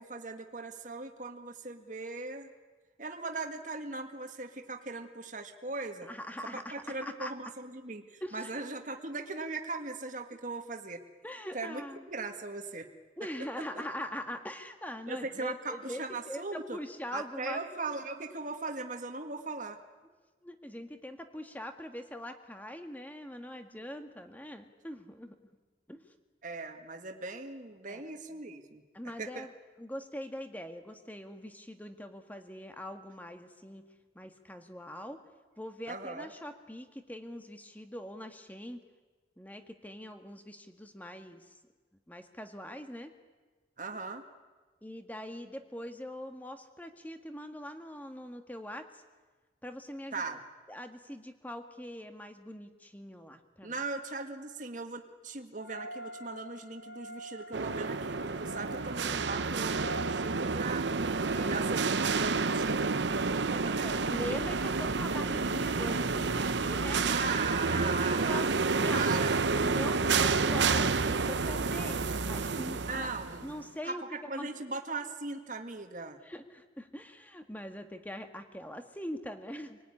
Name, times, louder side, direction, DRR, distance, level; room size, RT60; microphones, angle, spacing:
voice 1, 0.0-2.5 3.0-6.1 6.5-11.0 11.5-12.9 15.1-16.8 17.1-19.8 26.4-28.8 29.2-29.5 35.9-36.3 43.8-44.2 50.1-50.4 53.6-60.9 61.4-63.9 67.1-68.5 68.9-69.4 72.9-73.5 73.8-76.2, right 3 dB, 40° right, 4 dB, 1.8 m, -39 dB
voice 2, 6.1-6.7 7.0-7.3 8.2-8.5 11.2-12.0 13.2-16.0 16.3-17.6 20.4-25.4 25.9-26.0 27.9-28.0 28.9-29.5 29.8-33.8 34.1-35.2 35.6-38.8 39.4-41.5 42.1-43.1 44.8-49.0 49.6-50.2 50.7-53.8 61.3-61.6 63.7-67.2 67.6-68.5 68.8-69.1 69.6-73.1 73.4-74.0 74.4-74.5 76.2-79.8, equal, 10° left, 6 dB, 1.7 m, -42 dB
sound 1, 55.6-60.1, equal, 55° left, 3.4 m, -45 dB
sound 2, 57.5-73.6, right 4 dB, 70° right, 0.9 m, -29 dB
27.0 x 19.0 x 9.9 m, 1.4 s
head